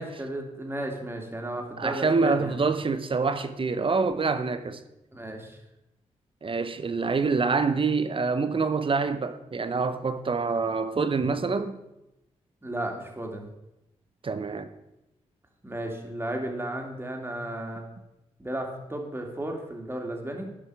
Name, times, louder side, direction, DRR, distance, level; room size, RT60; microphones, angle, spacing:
voice 1, 0.0-2.6 5.1-5.6 12.6-13.4 15.6-17.8 18.4-20.5, right 1 dB, 15° right, 2.4 m, -34 dB
voice 2, 1.8-4.8 6.4-11.8 14.2-14.7, right 4 dB, 45° right, 0.9 m, -26 dB
11.5 x 5.4 x 4.8 m
supercardioid pair, 50°, 13 cm